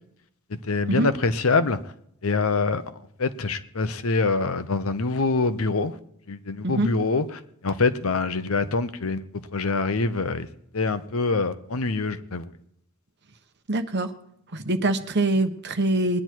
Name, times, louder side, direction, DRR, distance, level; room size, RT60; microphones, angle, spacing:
voice 1, 0.5-1.8 2.2-2.8 3.2-6.0 6.3-10.5 10.7-12.5, left 3 dB, 90° left, 0.9 m, -25 dB
voice 2, 13.7-14.1 14.5-16.2, right 2 dB, 55° right, 1.1 m, -24 dB
20.5 x 9.9 x 4.6 m
head